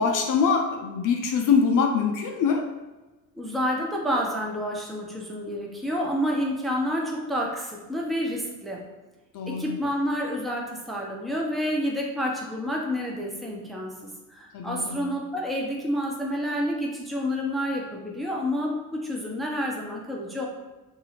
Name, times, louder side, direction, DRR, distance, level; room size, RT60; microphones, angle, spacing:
voice 1, 0.0-2.7 9.3-9.8 14.5-15.1, left 5 dB, 45° left, 2 dB, 0.6 m, -24 dB
voice 2, 3.3-8.8 9.5-20.5, equal, ahead, -2 dB, 0.7 m, -29 dB
2.7 x 2.7 x 4.1 m, 1.1 s
figure-of-eight pair, 50°, 46 cm